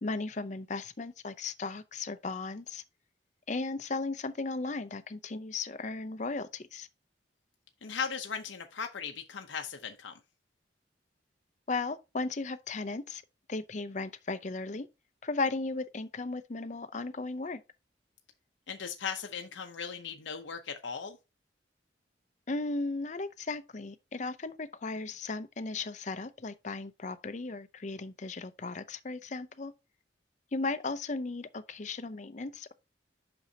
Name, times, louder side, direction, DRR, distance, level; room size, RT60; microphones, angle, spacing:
voice 1, 0.0-2.8 3.5-6.9 11.7-13.2 13.5-14.9 15.2-17.6 22.5-29.7 30.5-32.7, left 3 dB, 40° left, 0.6 m, -36 dB
voice 2, 7.8-10.1 18.7-21.2, left 6 dB, 90° left, 0.8 m, -38 dB
8.2 x 6.1 x 2.8 m
head